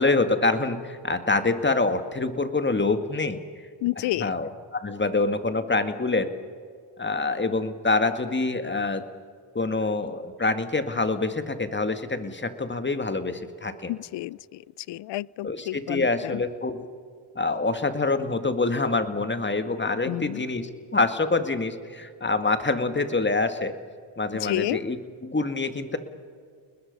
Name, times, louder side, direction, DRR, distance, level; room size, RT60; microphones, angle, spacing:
voice 1, 0.0-3.4 4.0-6.3 7.0-9.0 9.5-13.9 15.4-16.9 17.4-23.7 24.2-25.0 25.2-26.0, left 3 dB, 20° left, 9 dB, 2.1 m, -26 dB
voice 2, 3.8-4.3 13.9-14.6 14.9-16.4 20.1-20.4 24.3-24.8, left 17 dB, 60° left, 25 dB, 0.5 m, -30 dB
30.0 x 20.5 x 5.5 m, 2.2 s
supercardioid pair, 60°, 48 cm